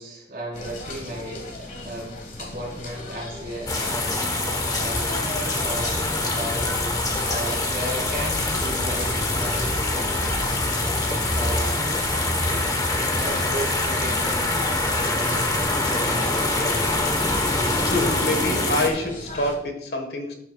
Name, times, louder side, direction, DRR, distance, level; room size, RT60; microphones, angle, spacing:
voice 1, 0.0-2.1 2.4-11.8 13.2-14.5 14.9-15.5 15.8-16.4, right 1 dB, 55° right, -2 dB, 3.4 m, -35 dB
sound 1, 0.5-19.6, left 2 dB, 45° left, 1.6 m, -38 dB
sound 2, 3.7-18.9, left 2 dB, 20° left, 1.0 m, -24 dB
voice 2, 17.9-20.3, left 1 dB, 70° left, 5 dB, 1.5 m, -26 dB
11.5 x 8.7 x 2.4 m, 0.78 s
head